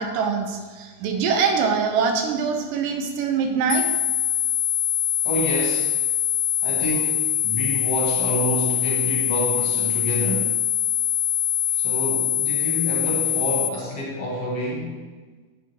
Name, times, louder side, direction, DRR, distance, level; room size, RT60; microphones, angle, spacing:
voice 1, 0.0-3.8, right 5 dB, 80° right, 4 dB, 2.5 m, -23 dB
sound 1, 3.7-13.7, left 9 dB, 80° left, 2.0 m, -23 dB
voice 2, 5.2-5.9 6.6-10.5 11.7-15.1, equal, 55° left, -4 dB, 2.0 m, -28 dB
10.0 x 8.2 x 2.9 m, 1.4 s
omnidirectional pair, 3.9 m